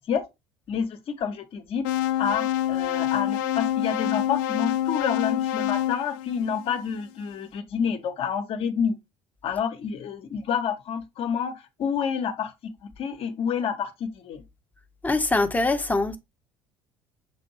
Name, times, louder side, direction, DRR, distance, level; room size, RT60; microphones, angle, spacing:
voice 1, 0.7-1.9 2.2-8.9 9.4-12.5 13.0-14.4, left 7 dB, 50° left, 0.8 m, -28 dB
sound 1, 1.8-7.0, left 12 dB, 65° left, 0.4 m, -27 dB
voice 2, 15.0-16.2, left 2 dB, 10° left, 0.7 m, -23 dB
6.1 x 2.6 x 2.9 m
hypercardioid pair, 65°, 13 cm